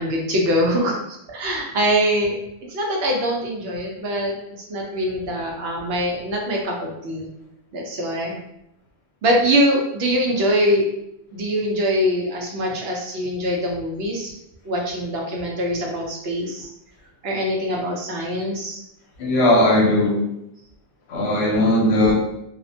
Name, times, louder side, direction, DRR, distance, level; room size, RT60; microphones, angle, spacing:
voice 1, 0.0-2.4 2.7-4.3 4.7-7.3 7.7-8.4 9.2-10.9 11.3-14.3 14.6-16.7 17.2-18.8, equal, 70° right, -1 dB, 0.8 m, -23 dB
voice 2, 19.2-20.2 21.1-22.1, left 1 dB, 75° left, -1 dB, 0.9 m, -18 dB
2.4 x 2.1 x 2.6 m, 0.80 s
omnidirectional pair, 1.1 m